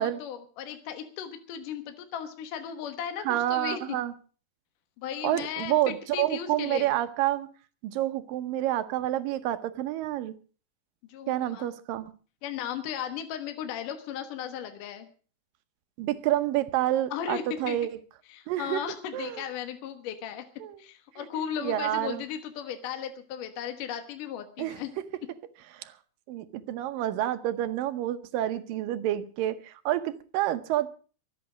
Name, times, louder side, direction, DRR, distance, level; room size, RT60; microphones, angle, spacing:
voice 1, 0.0-3.8 5.0-6.9 11.1-11.7 12.4-15.1 17.1-17.8 18.3-20.4 20.8-24.9, left 9 dB, 65° left, 7 dB, 2.7 m, -36 dB
voice 2, 3.2-4.1 5.2-7.5 7.8-10.3 11.3-12.1 16.0-18.0 18.5-18.8 19.1-19.4 20.6-20.8 21.1-22.2 24.6-24.8 25.7-25.9 26.3-30.9, right 13 dB, 75° right, 11 dB, 2.4 m, -29 dB
24.0 x 8.8 x 5.0 m, 0.39 s
omnidirectional pair, 4.3 m